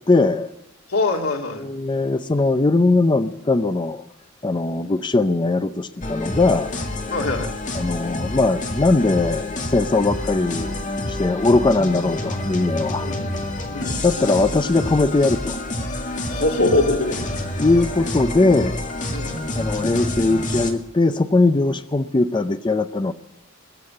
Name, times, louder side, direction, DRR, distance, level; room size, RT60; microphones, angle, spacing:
voice 1, 0.1-0.5 1.6-4.0 4.4-6.8 7.7-10.7 11.1-13.1 14.0-15.6 17.6-18.8 19.6-23.1, left 2 dB, 20° left, 11 dB, 0.5 m, -20 dB
voice 2, 0.9-1.6 7.1-7.5 13.0-13.4 13.7-14.0 16.3-17.2 19.1-19.4, left 2 dB, 90° left, 1 dB, 2.8 m, -23 dB
sound 1, 6.0-20.7, left 1 dB, 40° left, 1.9 m, -28 dB
21.5 x 7.7 x 8.4 m, 0.82 s
head